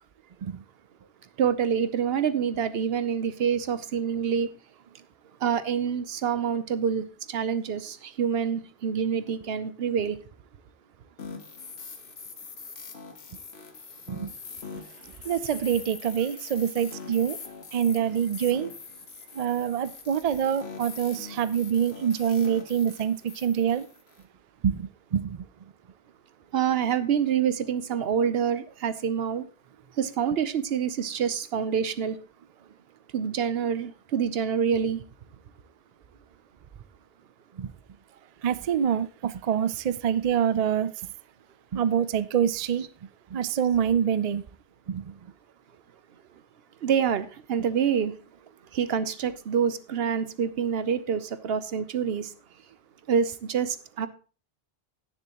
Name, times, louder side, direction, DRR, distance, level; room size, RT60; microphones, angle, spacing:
voice 1, 1.4-4.5 5.4-10.2 26.5-29.5 30.0-32.2 33.1-35.0 42.8-42.9 46.8-48.1 48.7-52.3 53.1-54.1, right 7 dB, 70° right, 0.9 m, -26 dB
sound 1, 11.2-24.2, left 5 dB, 80° left, 1.4 m, -43 dB
voice 2, 15.2-17.4 17.7-18.7 19.3-23.9 24.6-25.4 37.6-37.7 38.4-40.9 41.7-42.9 43.3-44.4 44.9-45.1, right 8 dB, 50° right, 0.5 m, -26 dB
17.0 x 7.0 x 2.9 m
omnidirectional pair, 1.1 m